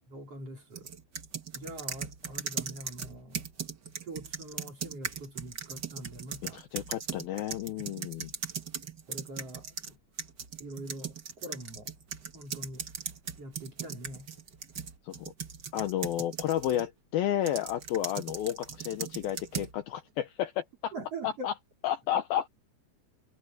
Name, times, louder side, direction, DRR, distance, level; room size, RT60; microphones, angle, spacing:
voice 1, 0.1-0.9 1.5-3.5 4.0-6.6 9.1-10.0 10.6-11.9 12.3-12.9 13.4-14.3 20.9-21.5, right 1 dB, 35° right, 5.2 m, -43 dB
sound 1, 0.8-9.9 10.2-16.9 17.5-19.7, right 6 dB, 80° right, 0.9 m, -39 dB
voice 2, 6.5-8.3 15.0-15.3 15.7-20.9 21.2-21.5 21.8-22.5, left 11 dB, 70° left, 2.4 m, -32 dB
omnidirectional pair, 5.0 m